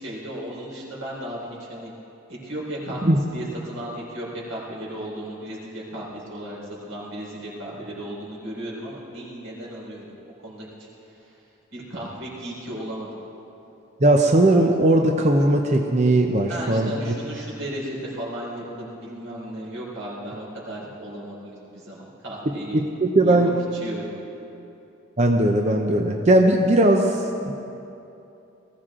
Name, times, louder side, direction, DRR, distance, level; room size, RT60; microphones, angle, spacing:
voice 1, 0.0-1.9 2.3-6.6 6.9-10.1 10.4-10.9 11.7-13.1 16.5-22.8 23.2-23.4 23.7-24.1, right 1 dB, 90° right, -4 dB, 4.4 m, -35 dB
voice 2, 14.0-17.2 22.7-23.5 25.2-27.5, right 1 dB, 35° right, 2 dB, 0.7 m, -19 dB
19.5 x 15.0 x 3.8 m, 2.8 s
head